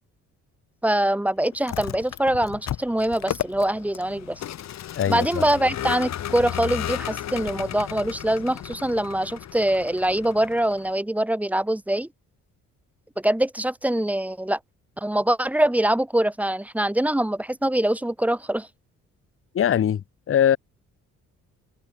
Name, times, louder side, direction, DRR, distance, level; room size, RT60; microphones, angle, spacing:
voice 1, 0.8-4.4 5.1-12.1 13.2-14.6 15.0-18.7, right 1 dB, 5° right, 1.0 m, -23 dB
Vehicle, 1.5-10.9, left 11 dB, 60° left, 1.4 m, -34 dB
voice 2, 5.0-5.5 19.5-20.6, left 9 dB, 45° left, 1.0 m, -22 dB
cardioid pair, 90°, 30 cm